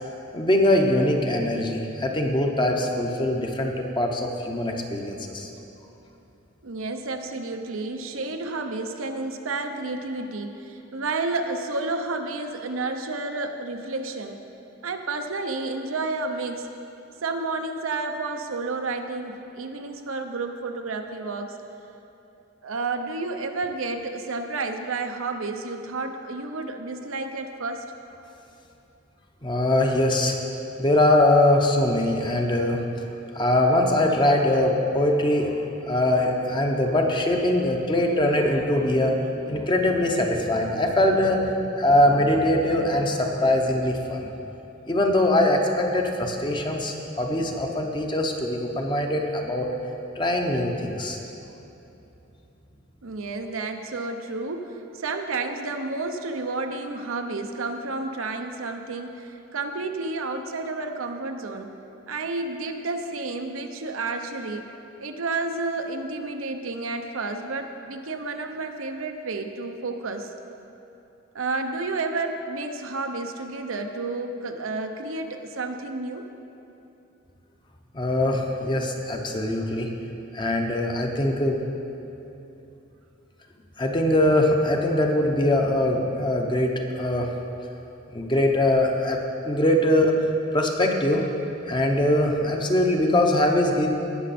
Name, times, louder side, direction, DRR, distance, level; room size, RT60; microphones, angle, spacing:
voice 1, 0.3-5.5 29.4-30.4 30.8-32.8 33.3-35.6 35.8-39.2 39.5-44.3 44.9-49.7 50.2-51.2 77.9-79.9 80.3-81.6 83.8-87.3 88.1-89.2 89.4-90.1 90.5-91.3 91.6-93.9, left 1 dB, 25° left, 2 dB, 0.9 m, -22 dB
voice 2, 6.6-14.4 14.8-16.7 17.2-21.6 22.6-27.8 53.0-61.7 62.1-64.6 65.0-70.3 71.3-76.3, right 3 dB, 90° right, 5 dB, 0.8 m, -31 dB
18.0 x 6.4 x 4.3 m, 2.9 s
head